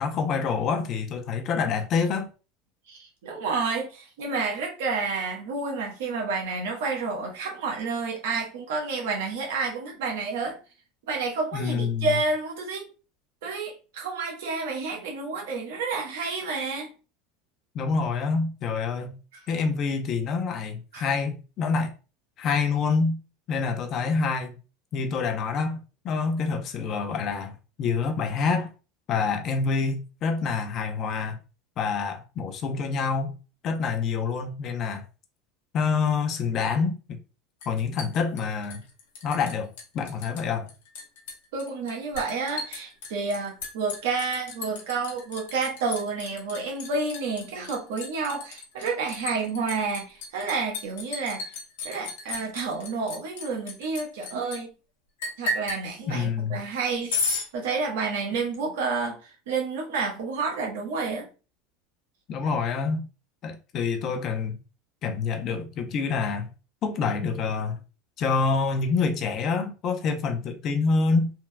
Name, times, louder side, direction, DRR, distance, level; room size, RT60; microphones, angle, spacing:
voice 1, 0.0-2.3 11.5-12.1 17.7-19.2 19.5-21.9 22.4-23.2 23.5-24.6 24.9-27.5 27.8-28.7 29.1-31.4 31.8-33.3 33.6-35.0 35.7-37.2 37.7-38.8 39.2-40.7 56.1-56.6 62.3-63.1 63.4-64.6 65.0-66.5 66.8-67.8 68.2-71.3, left 5 dB, 45° left, 0.7 m, -27 dB
voice 2, 2.9-10.6 11.1-12.9 13.4-16.9 19.3-19.4 20.9-21.1 41.5-51.4 51.8-54.7 55.4-57.2 57.5-61.3, right 4 dB, 75° right, 1.1 m, -30 dB
Liquid, 37.6-39.5 39.8-40.4 40.7-54.6 55.2-55.8 57.1-57.5, left 3 dB, 75° left, 1.0 m, -34 dB
3.4 x 2.8 x 2.2 m
hypercardioid pair, 90°, 0 cm